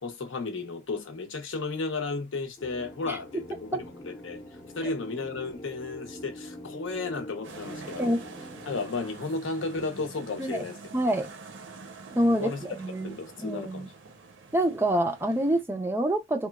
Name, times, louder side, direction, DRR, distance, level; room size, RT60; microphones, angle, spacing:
voice 1, 0.0-4.4 4.8-8.2 8.7-10.8 12.2-12.7 13.0-13.9, left 3 dB, 80° left, 0.7 m, -34 dB
sound 1, 2.6-9.0, equal, 30° left, 0.6 m, -44 dB
sound 2, 7.4-15.6, right 4 dB, 70° right, 0.5 m, -46 dB
voice 2, 10.9-11.3 12.2-13.9 14.5-16.5, right 1 dB, 10° right, 0.3 m, -27 dB
3.1 x 2.1 x 2.2 m
head